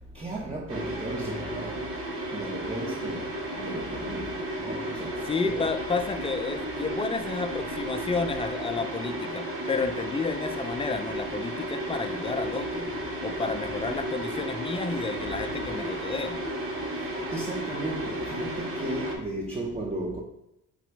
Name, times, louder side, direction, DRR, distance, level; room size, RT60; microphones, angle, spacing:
voice 1, 0.2-1.8 2.3-3.3 3.6-4.3 4.6-5.1 5.4-5.7 17.3-20.2, right 1 dB, 20° right, 0.7 m, -34 dB
sound 1, 0.7-19.2, right 1 dB, 45° right, 1.2 m, -33 dB
voice 2, 5.2-12.9 13.2-16.5, left 4 dB, 20° left, 0.4 m, -31 dB
4.0 x 3.0 x 4.5 m
cardioid pair, 90°, 30 cm